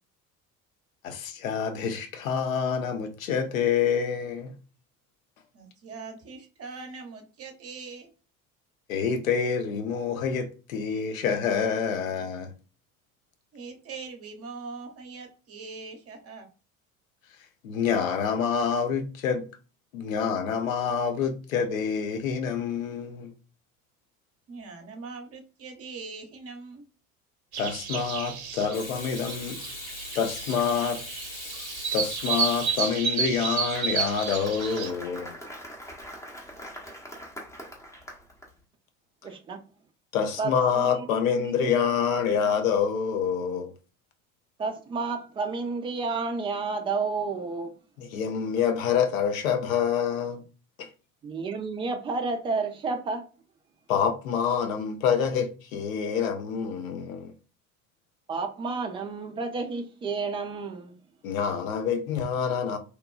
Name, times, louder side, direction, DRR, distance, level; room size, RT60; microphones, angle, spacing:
voice 1, 1.0-4.5 8.9-12.5 17.6-19.4 19.9-23.3 27.6-29.6 30.1-31.0 31.9-35.3 40.1-43.7 48.0-50.4 50.8-50.9 53.9-57.3 61.2-62.8, left 7 dB, 70° left, 0.6 m, -27 dB
voice 2, 5.5-8.1 13.5-16.5 24.5-26.8, right 4 dB, 35° right, 0.7 m, -41 dB
sound 1, 27.5-34.9, right 6 dB, 75° right, 0.6 m, -32 dB
Water tap faucet / Sink (filling or washing), 28.7-33.5 35.9-36.1, left 4 dB, 40° left, 0.8 m, -41 dB
Applause, 33.3-38.5, equal, 5° left, 0.7 m, -43 dB
voice 3, 39.2-39.6 40.4-41.1 41.3-41.7 42.3-42.5 44.6-47.7 51.2-53.2 58.3-61.0, right 4 dB, 15° right, 0.3 m, -31 dB
2.9 x 2.1 x 2.3 m
figure-of-eight pair, 60°, 42 cm